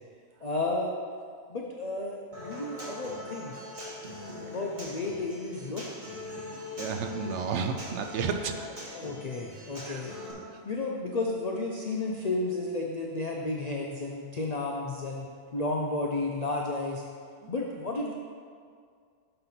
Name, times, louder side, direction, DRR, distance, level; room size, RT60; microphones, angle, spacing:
voice 1, 0.4-0.9 1.5-3.5 4.4-5.8 7.2-7.4 8.9-10.1 10.7-15.3 15.5-17.0 17.5-18.1, left 2 dB, 75° left, -1 dB, 0.3 m, -32 dB
Human voice / Acoustic guitar, 2.3-10.3, left 1 dB, 35° right, 1.5 m, -42 dB
voice 2, 6.8-8.7 9.9-10.0 17.4-17.5, right 5 dB, 65° right, 6 dB, 0.8 m, -32 dB
6.6 x 4.0 x 5.7 m, 2.1 s
omnidirectional pair, 1.4 m